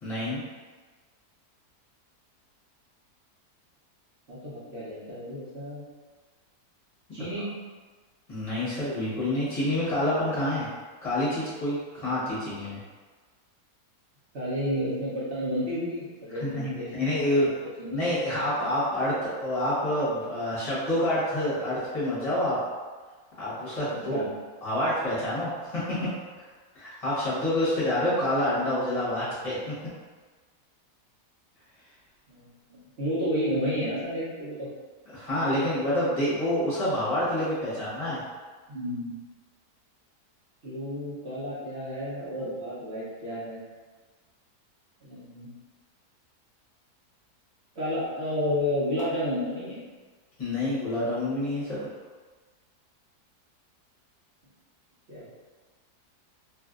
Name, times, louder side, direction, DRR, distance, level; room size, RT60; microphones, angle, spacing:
voice 1, 0.0-0.4 8.3-10.7 11.0-12.8 16.4-17.5 17.9-22.6 23.4-24.2 24.6-26.1 26.4-26.5 26.7-29.7 35.1-38.2 50.4-51.8, left 1 dB, 25° left, -10 dB, 1.0 m, -27 dB
voice 2, 4.3-5.8 7.1-7.5 14.3-17.5 17.8-18.1 24.1-24.3 32.3-32.4 32.7-34.7 38.7-39.2 40.6-43.6 45.0-45.5 47.7-49.8 55.1-55.4, equal, 50° right, -9 dB, 1.0 m, -31 dB
2.9 x 2.5 x 2.4 m, 1.4 s
omnidirectional pair, 1.7 m